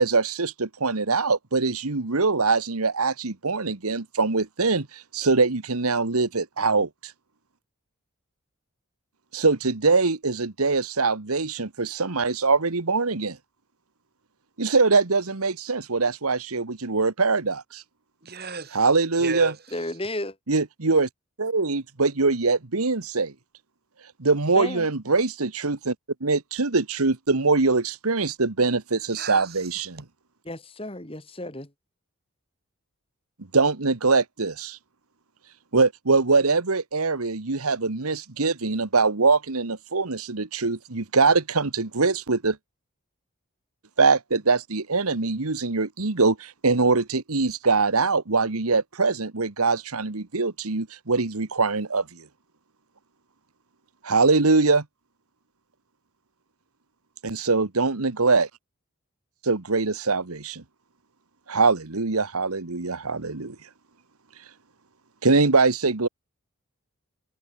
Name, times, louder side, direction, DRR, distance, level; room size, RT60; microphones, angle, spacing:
voice 1, 0.0-7.1 9.3-13.4 14.6-17.8 18.7-19.5 20.5-21.1 21.4-23.3 24.2-25.9 26.2-30.0 33.5-34.8 35.7-42.6 44.0-52.2 54.0-54.8 57.2-58.5 59.4-60.6 61.5-63.5 65.2-66.1, right 4 dB, 90° right, 1.5 m, -23 dB
voice 2, 18.2-18.8 19.2-19.8 29.1-29.9, right 4 dB, 45° right, 2.8 m, -35 dB
voice 3, 19.7-20.4 24.5-24.9 30.4-31.7, left 1 dB, 25° left, 2.2 m, -33 dB
head